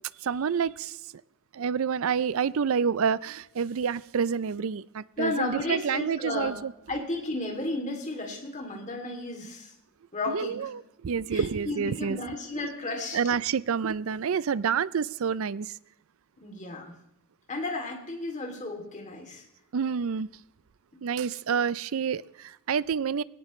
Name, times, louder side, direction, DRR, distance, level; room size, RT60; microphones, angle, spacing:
voice 1, 0.2-1.0 1.5-6.7 10.3-10.7 11.0-12.2 12.5-12.7 13.1-15.8 19.7-20.3 21.0-23.2, right 6 dB, 65° right, 19 dB, 0.4 m, -28 dB
voice 2, 5.2-6.6 6.9-9.7 10.1-10.7 11.3-13.2 16.4-16.9 17.5-19.4, left 2 dB, 35° left, 2 dB, 2.7 m, -33 dB
20.5 x 17.5 x 3.2 m, 0.83 s
head